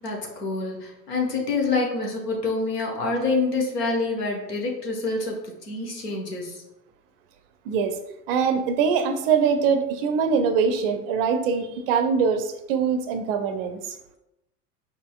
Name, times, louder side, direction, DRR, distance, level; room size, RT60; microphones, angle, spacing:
voice 1, 0.0-6.6, left 3 dB, 70° left, 1 dB, 1.2 m, -27 dB
voice 2, 7.7-8.0 8.3-13.9, right 6 dB, 35° right, 8 dB, 0.5 m, -23 dB
5.0 x 4.1 x 2.3 m, 0.91 s
figure-of-eight pair, 85°, 50 cm